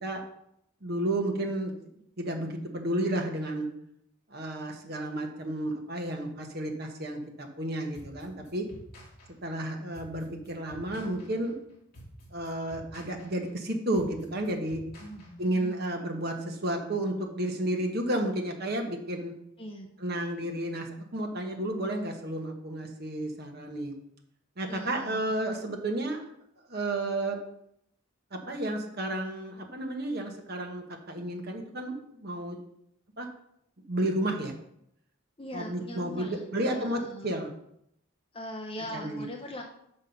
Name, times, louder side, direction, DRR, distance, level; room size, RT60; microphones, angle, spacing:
voice 1, 0.8-1.7 2.2-3.7 4.3-8.7 9.3-11.6 12.3-14.8 15.4-19.3 20.0-20.9 21.1-24.0 24.6-26.2 26.7-27.4 28.3-31.9 32.2-32.6 33.2-33.3 33.9-34.5 35.5-37.5 38.9-39.2, right 1 dB, 45° right, 2 dB, 1.3 m, -32 dB
sound 1, 7.9-15.7, equal, 45° left, 3.0 m, -50 dB
voice 2, 15.0-15.9 19.6-19.9 24.7-25.2 35.4-37.3 38.3-39.7, equal, 25° left, 2 dB, 0.6 m, -41 dB
5.9 x 5.4 x 5.9 m, 0.75 s
head